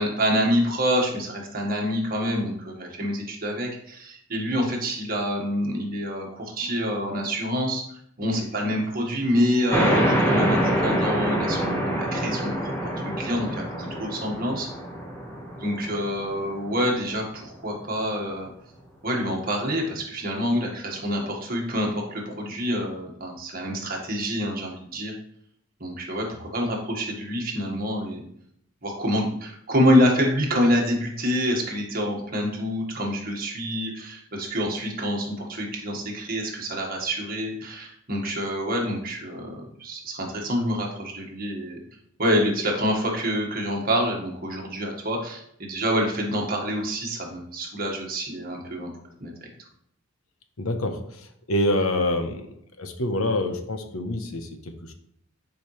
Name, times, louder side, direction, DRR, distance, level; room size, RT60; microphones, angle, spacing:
voice 1, 0.0-14.7 15.6-18.5 19.0-25.1 25.8-28.3 28.8-39.4 39.8-41.8 42.2-48.9 49.2-49.3, equal, 40° right, 0 dB, 1.7 m, -27 dB
sound 1, 9.7-16.9, equal, 15° left, 1.5 m, -26 dB
voice 2, 50.6-52.5 52.8-54.9, left 1 dB, 75° left, 6 dB, 1.0 m, -26 dB
10.5 x 5.1 x 3.3 m, 0.70 s
head